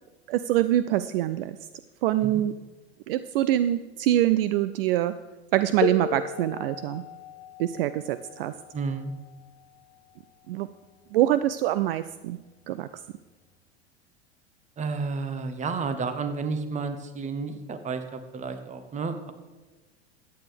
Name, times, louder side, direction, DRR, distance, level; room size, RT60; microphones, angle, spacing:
voice 1, 0.3-1.6 2.0-2.5 3.1-5.1 5.5-7.0 7.6-8.5 10.5-10.7 11.1-12.4 12.7-12.9, right 13 dB, 60° right, 13 dB, 0.5 m, -24 dB
sound 1, 5.8-11.2 12.3-12.4 13.2-13.4, left 7 dB, 70° left, 1.2 m, -36 dB
voice 2, 8.7-9.1 14.8-19.3, right 4 dB, 20° right, 9 dB, 1.0 m, -31 dB
14.5 x 9.3 x 3.5 m, 1.2 s
hypercardioid pair, 95°, 33 cm